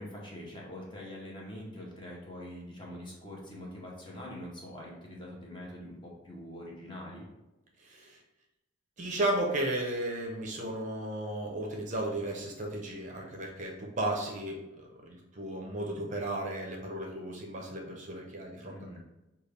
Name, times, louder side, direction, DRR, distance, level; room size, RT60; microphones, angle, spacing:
voice 1, 0.0-7.3 18.7-19.0, left 1 dB, 25° left, -3 dB, 0.8 m, -44 dB
voice 2, 7.8-8.2 9.0-19.0, right 1 dB, 35° right, 0 dB, 0.5 m, -34 dB
5.3 x 2.3 x 3.3 m, 0.98 s
head